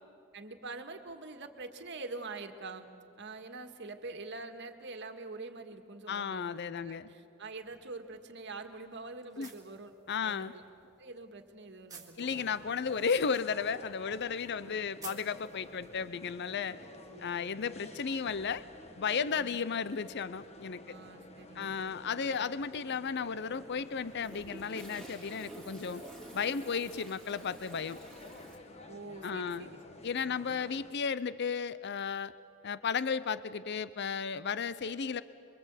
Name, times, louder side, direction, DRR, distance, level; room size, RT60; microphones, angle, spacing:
voice 1, 0.3-2.9 3.2-9.9 10.2-10.6 11.0-12.5 14.6-14.7 16.9-17.8 19.4-19.6 20.9-22.1 28.9-29.8 30.2-30.6, right 3 dB, 55° right, 7 dB, 1.8 m, -45 dB
voice 2, 6.1-7.1 9.4-9.5 10.1-10.5 12.2-16.8 17.2-18.6 19.0-20.9 21.6-26.0 26.3-28.0 29.2-29.7 30.0-32.3 32.6-35.2, left 6 dB, 55° left, 16 dB, 0.6 m, -34 dB
sound 1, 7.6-16.2, right 5 dB, 15° right, 3.0 m, -56 dB
sound 2, 12.2-30.9, left 2 dB, 30° left, 1.5 m, -52 dB
Toilet flush, 23.3-28.6, right 1 dB, ahead, 3.8 m, -50 dB
26.5 x 23.5 x 8.3 m, 2.6 s
head